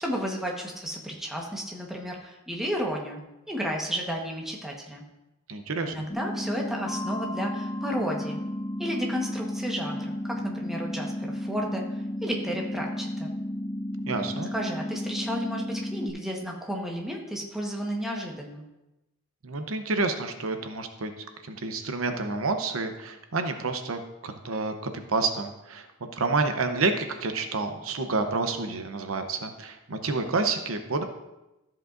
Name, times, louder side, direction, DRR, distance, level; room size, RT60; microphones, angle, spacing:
voice 1, 0.0-3.2 3.5-5.0 5.8-8.4 8.8-11.8 12.2-13.3 14.5-18.6, equal, ahead, -1 dB, 1.2 m, -32 dB
voice 2, 5.5-5.9 14.1-14.5 19.4-21.1 21.4-31.0, right 3 dB, 75° right, 6 dB, 0.8 m, -29 dB
sound 1, 6.1-16.1, left 1 dB, 25° left, 1.1 m, -33 dB
Mallet percussion, 6.9-9.5, left 2 dB, 65° left, 2.2 m, -42 dB
13.5 x 7.5 x 2.6 m, 0.96 s
head